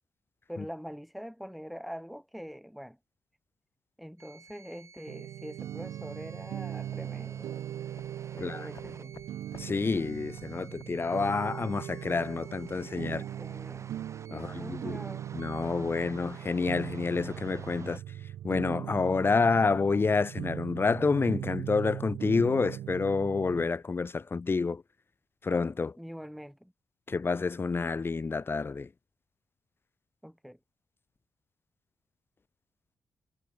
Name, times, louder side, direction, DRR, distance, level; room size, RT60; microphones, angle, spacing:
voice 1, 0.5-3.0 4.0-7.6 8.3-9.1 13.1-13.9 14.3-15.2 26.0-26.7 30.2-30.6, equal, ahead, 2.1 m, -44 dB
sound 1, 4.2-18.0, right 5 dB, 45° right, 3.0 m, -52 dB
sound 2, 5.1-23.7, right 12 dB, 85° right, 0.9 m, -40 dB
sound 3, 5.7-12.6, left 6 dB, 55° left, 4.7 m, -59 dB
voice 2, 9.6-13.2 14.3-15.0 15.3-18.0 18.4-24.8 25.4-25.9 27.1-28.9, left 4 dB, 30° left, 0.9 m, -28 dB
cardioid pair, 80°, 7 cm